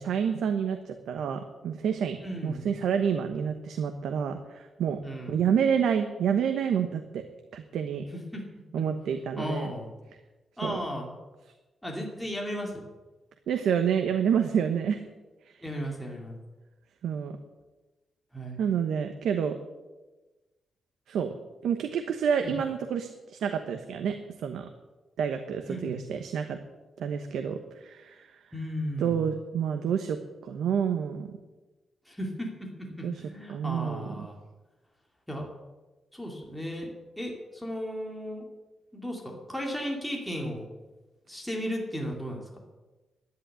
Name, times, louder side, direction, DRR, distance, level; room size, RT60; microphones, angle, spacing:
voice 1, 0.0-2.2 2.4-5.0 5.3-7.2 7.5-8.1 8.7-9.7 10.6-10.8 13.5-15.0 15.5-15.6 17.0-17.4 18.6-19.6 21.1-21.3 21.6-24.7 25.2-26.6 27.0-28.4 29.0-30.2 30.4-31.4 33.0-33.2 33.5-34.3, right 7 dB, 85° right, 6 dB, 1.1 m, -28 dB
voice 2, 2.2-2.7 5.0-5.4 8.1-8.4 9.4-9.9 10.6-11.1 11.8-12.9 15.6-16.4 18.3-18.6 22.4-22.5 25.7-26.0 28.5-29.2 32.0-34.4 35.3-35.5 36.1-38.5 38.9-40.7 41.3-42.4, equal, ahead, -1 dB, 2.7 m, -35 dB
11.0 x 10.5 x 9.9 m, 1.2 s
wide cardioid pair, 135°, 0 cm